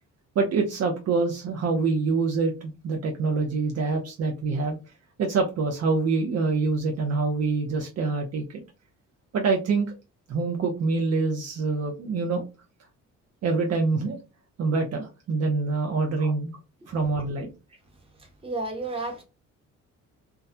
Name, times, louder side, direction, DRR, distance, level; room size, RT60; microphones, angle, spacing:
voice 1, 0.4-4.8 5.2-8.6 9.3-9.9 10.3-12.4 13.4-14.2 14.6-16.5 16.9-17.5, right 4 dB, 55° right, 0.6 m, -25 dB
voice 2, 18.4-19.2, right 2 dB, 20° right, 1.0 m, -32 dB
2.3 x 2.1 x 2.6 m
cardioid pair, 90°, 30 cm